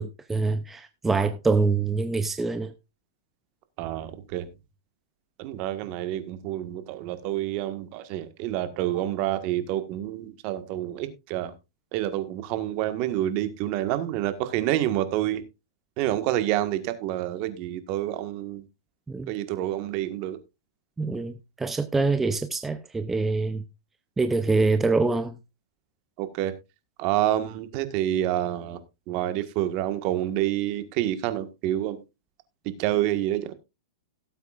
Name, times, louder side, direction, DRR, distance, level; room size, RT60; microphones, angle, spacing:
voice 1, 0.0-2.7 19.1-19.3 21.0-23.6 24.2-25.4, right 3 dB, 10° right, 0.6 m, -25 dB
voice 2, 3.8-4.5 5.4-11.5 11.9-15.4 16.0-18.6 19.3-20.4 26.2-26.5 27.0-28.8 29.1-32.0 32.8-33.5, right 13 dB, 40° right, 1.6 m, -28 dB
17.5 x 8.0 x 2.5 m
hypercardioid pair, 145°, 3 cm